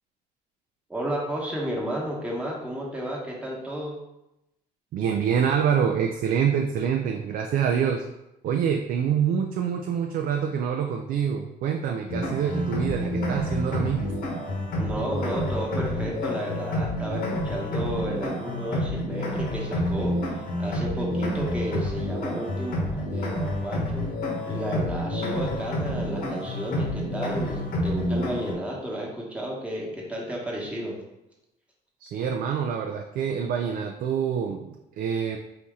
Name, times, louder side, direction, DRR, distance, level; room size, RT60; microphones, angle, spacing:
voice 1, 0.9-4.0 14.8-24.0 24.4-31.0, right 1 dB, 5° right, -4 dB, 1.1 m, -32 dB
voice 2, 4.9-8.1 8.4-14.1 32.0-35.4, right 7 dB, 60° right, 3 dB, 0.4 m, -26 dB
sound 1, 12.1-28.5, left 1 dB, 60° left, 1.1 m, -29 dB
4.4 x 2.8 x 3.6 m, 0.90 s
cardioid pair, 110°, 17 cm